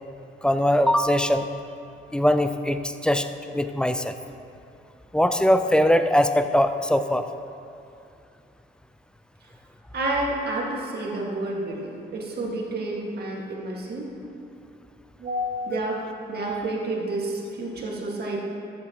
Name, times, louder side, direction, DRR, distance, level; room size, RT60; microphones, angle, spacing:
voice 1, 0.4-1.4 2.1-3.3 3.5-4.1 5.1-7.2, equal, 5° left, 8 dB, 0.5 m, -21 dB
voice 2, 9.9-14.2 15.2-16.0 16.3-18.4, right 2 dB, 55° right, -2 dB, 2.0 m, -29 dB
13.5 x 8.4 x 3.0 m, 2.6 s
cardioid pair, 90°, 20 cm